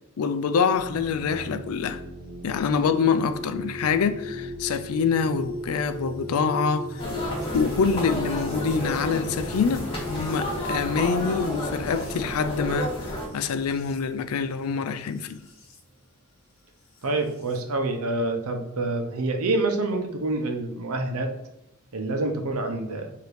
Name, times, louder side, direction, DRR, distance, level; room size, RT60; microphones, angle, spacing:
voice 1, 0.2-2.0 2.4-7.0 7.5-15.4, left 5 dB, 85° left, 0.4 m, -25 dB
sound 1, 0.7-15.8 17.0-17.6, equal, 65° left, 1.0 m, -38 dB
sound 2, 7.0-13.3, left 1 dB, 25° left, 1.6 m, -31 dB
voice 2, 17.0-21.3 21.9-23.1, right 2 dB, 85° right, 0.8 m, -27 dB
4.9 x 2.8 x 3.1 m
head